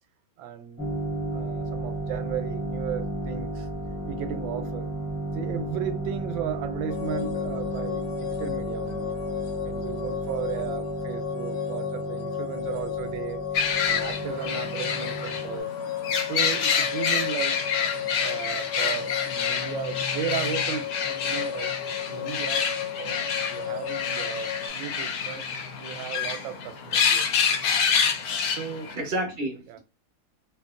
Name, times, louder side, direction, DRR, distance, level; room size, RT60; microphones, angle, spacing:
voice 1, 0.4-0.8 1.3-3.7 4.1-4.9 5.3-9.2 9.6-13.4 13.8-15.7 16.3-17.6 18.2-21.7 22.1-22.7 23.0-25.4 25.8-27.3 28.5-29.0 29.7-29.8, right 9 dB, 90° right, 1.3 m, -35 dB
sound 1, 0.8-15.6, right 1 dB, 15° left, 0.9 m, -33 dB
voice 2, 4.0-4.4 29.0-29.8, right 1 dB, 45° right, 0.7 m, -31 dB
sound 2, 6.9-24.7, left 10 dB, 85° left, 1.3 m, -34 dB
sound 3, 13.5-29.0, left 6 dB, 70° left, 1.0 m, -28 dB
2.8 x 2.6 x 2.4 m
omnidirectional pair, 2.0 m